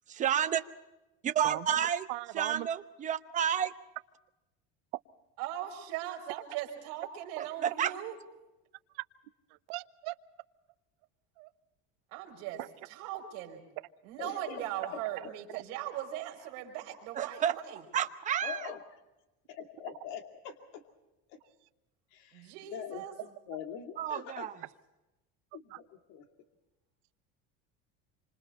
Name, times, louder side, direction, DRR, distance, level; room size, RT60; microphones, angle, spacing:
voice 1, 0.1-0.6 1.2-2.0 2.3-3.7 7.4-7.9 17.1-17.5 17.9-18.7 24.0-24.5, right 9 dB, 25° right, 9 dB, 0.9 m, -30 dB
voice 2, 2.1-2.7 8.9-9.0 9.7-10.2 11.4-11.5 12.6-12.7 15.5-15.6 25.7-25.8, right 22 dB, 85° right, 12 dB, 0.9 m, -38 dB
voice 3, 5.4-8.1 12.1-12.6 12.9-13.6 14.0-17.8 22.3-23.1, right 12 dB, 60° right, 1 dB, 5.0 m, -39 dB
voice 4, 14.2-14.6 14.9-15.0 18.4-18.8 19.5-20.8 21.3-21.4 22.1-24.5 25.5-26.2, left 8 dB, 65° left, 5 dB, 2.5 m, -43 dB
27.5 x 26.0 x 4.3 m, 1.0 s
cardioid pair, 170°, 31 cm